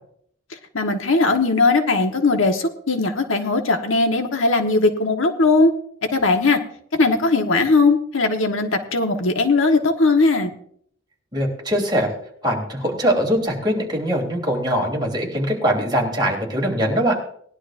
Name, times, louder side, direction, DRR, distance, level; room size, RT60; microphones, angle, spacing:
voice 1, 0.7-5.7 6.1-6.6 6.9-10.5, left 3 dB, 75° left, 5 dB, 1.4 m, -19 dB
voice 2, 11.3-12.1 12.4-17.2, equal, 20° right, -1 dB, 3.6 m, -22 dB
19.5 x 11.5 x 2.6 m, 0.63 s
head